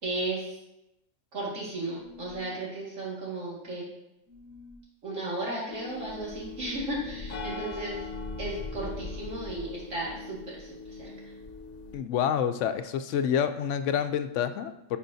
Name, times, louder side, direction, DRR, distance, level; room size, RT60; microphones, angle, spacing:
voice 1, 0.0-0.6 1.3-3.9 5.0-8.1 8.4-11.1, right 2 dB, 85° right, -5 dB, 2.4 m, -35 dB
sound 1, 2.0-2.6 4.3-4.8 6.7-7.4, left 7 dB, 20° right, 0.5 m, -49 dB
sound 2, 5.7-12.0, left 3 dB, 45° left, 0.6 m, -40 dB
voice 2, 11.9-15.0, left 8 dB, 75° left, 9 dB, 0.9 m, -28 dB
10.0 x 5.0 x 2.7 m, 0.86 s
omnidirectional pair, 1.3 m